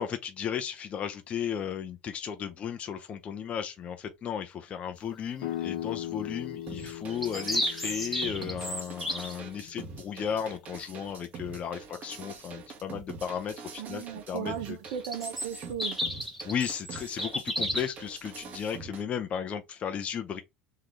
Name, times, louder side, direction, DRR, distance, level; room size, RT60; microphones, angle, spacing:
voice 1, 0.0-14.8 16.4-20.4, left 8 dB, 35° left, 0.6 m, -35 dB
sound 1, 5.4-11.0, left 12 dB, 70° left, 1.0 m, -40 dB
sound 2, 6.7-19.0, right 5 dB, 40° right, 1.2 m, -44 dB
sound 3, 6.8-9.3 14.8-18.0, equal, ahead, 1.3 m, -33 dB
voice 2, 13.8-16.0, right 9 dB, 75° right, 0.7 m, -36 dB
3.8 x 3.2 x 3.3 m
supercardioid pair, 115°, 4 cm